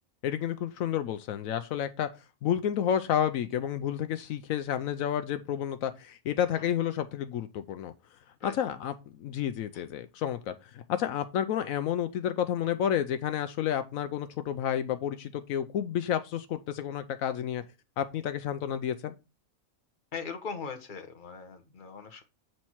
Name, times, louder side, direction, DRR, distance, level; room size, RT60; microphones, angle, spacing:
voice 1, 0.2-2.1 2.4-7.9 8.4-17.6 18.0-19.2, left 9 dB, 80° left, 10 dB, 1.0 m, -30 dB
voice 2, 20.1-22.2, left 5 dB, 40° left, 6 dB, 1.2 m, -40 dB
7.8 x 4.2 x 4.4 m, 0.27 s
omnidirectional pair, 1.5 m